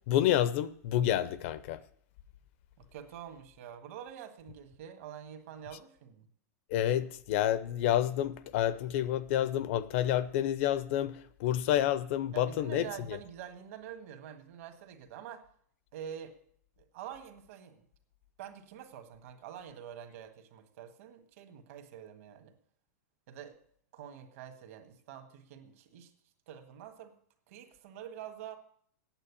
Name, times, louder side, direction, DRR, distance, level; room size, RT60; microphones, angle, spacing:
voice 1, 0.1-1.8 6.7-13.2, left 11 dB, 45° left, 0.6 m, -29 dB
voice 2, 2.8-6.3 12.3-15.5 15.9-16.3 16.8-17.8 18.4-22.5 23.3-23.5 23.9-26.1 26.5-27.1 27.5-28.6, right 9 dB, 55° right, 1.6 m, -46 dB
9.0 x 7.9 x 8.4 m
supercardioid pair, 155°, 9 cm